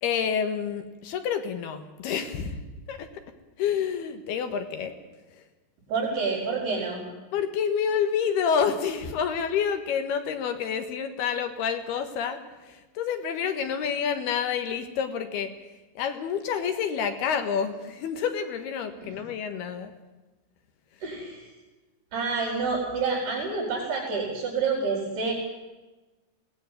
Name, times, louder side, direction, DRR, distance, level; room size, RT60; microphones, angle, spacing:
voice 1, 0.0-2.6 2.9-3.1 3.6-4.9 7.3-12.4 12.7-15.5 16.0-19.9, left 7 dB, 75° left, 8 dB, 3.4 m, -28 dB
voice 2, 5.9-7.0 19.0-19.2 21.0-21.5 22.1-25.3, right 4 dB, 70° right, -2 dB, 6.6 m, -28 dB
21.5 x 18.5 x 9.2 m, 1.2 s
omnidirectional pair, 4.8 m